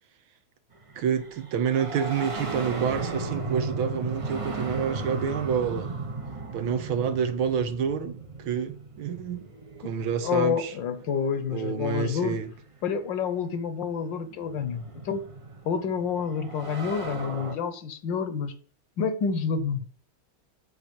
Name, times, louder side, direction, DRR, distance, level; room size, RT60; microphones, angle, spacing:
sound 1, 0.8-11.4 12.7-12.8 13.8-17.5, right 3 dB, 35° right, 0.5 m, -36 dB
voice 1, 1.0-5.9 6.5-9.5 9.8-10.7 11.5-12.5, right 7 dB, 80° right, 1.8 m, -28 dB
voice 2, 10.2-12.4 12.8-15.2 15.6-18.5 19.0-19.8, left 6 dB, 65° left, 1.5 m, -28 dB
8.6 x 4.3 x 7.0 m
omnidirectional pair, 2.2 m